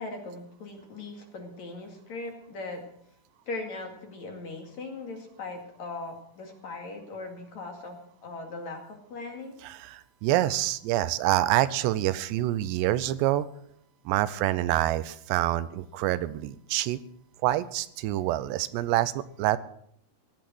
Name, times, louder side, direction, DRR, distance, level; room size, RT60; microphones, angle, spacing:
voice 1, 0.0-2.8 3.4-9.6, left 3 dB, 50° left, 3 dB, 3.0 m, -39 dB
voice 2, 9.6-13.5 14.1-17.0 17.4-19.6, right 14 dB, 90° right, 15 dB, 2.9 m, -26 dB
17.5 x 11.5 x 6.2 m, 0.68 s
omnidirectional pair, 4.8 m